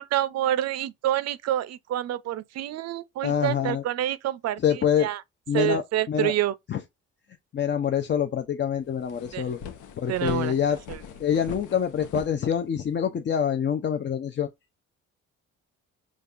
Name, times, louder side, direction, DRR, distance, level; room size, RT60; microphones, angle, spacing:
voice 1, 0.0-5.2 5.5-6.5 9.3-9.5 10.1-10.5 10.9-11.0, right 13 dB, 60° right, 0.5 m, -27 dB
voice 2, 3.2-3.8 4.6-5.1 5.5-6.3 6.7-6.8 7.5-9.6 10.0-10.8 11.2-14.5, left 8 dB, 40° left, 0.5 m, -26 dB
sound 1, 8.4-8.5 8.8-13.0, left 8 dB, 80° left, 0.7 m, -40 dB
5.2 x 2.4 x 2.4 m
cardioid pair, 90°, 30 cm